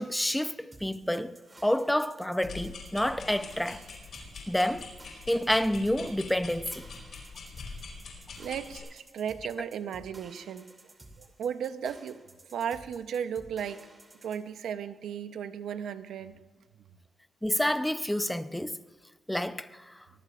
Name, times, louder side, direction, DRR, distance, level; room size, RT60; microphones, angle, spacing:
voice 1, 0.0-1.3 1.6-3.8 4.5-4.9 5.3-6.8 17.4-18.8 19.3-19.9, left 1 dB, 5° left, 0.7 m, -28 dB
sound 1, 0.7-14.4, right 2 dB, 25° right, 2.7 m, -54 dB
sound 2, 2.4-8.8, left 4 dB, 60° left, 5.3 m, -44 dB
voice 2, 8.4-10.7 11.2-12.2 12.5-13.9 14.2-16.4, right 8 dB, 80° right, 0.8 m, -35 dB
25.0 x 20.0 x 2.5 m
cardioid pair, 85°, 0 cm